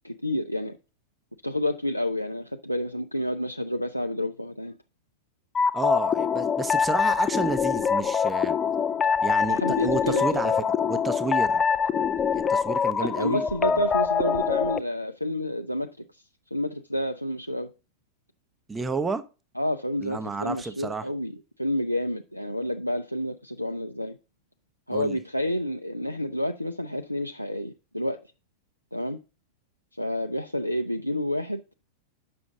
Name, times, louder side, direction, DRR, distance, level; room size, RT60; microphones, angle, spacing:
voice 1, 0.0-0.8 1.4-4.7 9.5-10.2 13.0-16.2 16.5-17.7 19.6-24.2 24.9-28.2 28.9-29.2 30.0-31.6, left 1 dB, 90° left, 0.4 m, -29 dB
sound 1, 5.5-14.8, left 6 dB, 20° left, 0.4 m, -24 dB
voice 2, 5.7-8.6 9.2-11.6 12.3-13.8 18.7-19.2 20.0-21.1 24.9-25.2, right 4 dB, 15° right, 0.7 m, -31 dB
7.6 x 6.1 x 3.8 m
figure-of-eight pair, 90°, 0 cm